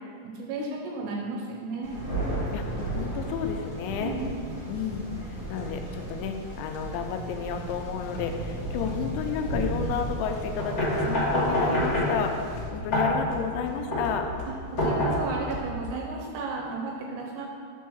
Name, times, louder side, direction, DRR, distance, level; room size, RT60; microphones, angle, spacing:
voice 1, 0.2-2.0 4.0-4.4 14.5-14.6 14.8-17.5, right 4 dB, 80° right, -1 dB, 2.7 m, -34 dB
Thunder, 1.8-12.6, right 1 dB, 50° right, 2.3 m, -35 dB
voice 2, 2.5-4.1 4.7-12.4 12.7-14.3, left 7 dB, 85° left, 5 dB, 3.0 m, -31 dB
sound 1, 7.3-11.6 11.8-16.2, left 1 dB, 70° left, 2.2 m, -42 dB
sound 2, 10.6-15.6, left 1 dB, 40° left, 1.7 m, -27 dB
6.2 x 4.6 x 6.1 m, 2.1 s
omnidirectional pair, 5.2 m